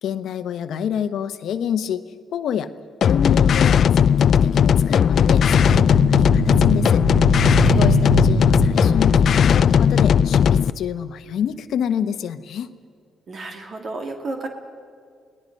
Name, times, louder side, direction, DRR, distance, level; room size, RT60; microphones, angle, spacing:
voice 1, 0.0-2.0 2.3-2.7 3.0-3.8 4.2-12.7, left 8 dB, 75° left, 10 dB, 1.0 m, -28 dB
sound 1, 3.0-10.7, left 8 dB, 60° left, 0.4 m, -16 dB
sound 2, 5.4-10.2, right 7 dB, 75° right, 1.0 m, -26 dB
voice 2, 7.5-8.3 13.3-14.5, right 2 dB, 55° right, 3 dB, 2.5 m, -33 dB
29.5 x 19.0 x 5.4 m, 2.2 s
cardioid pair, 95°, 0 cm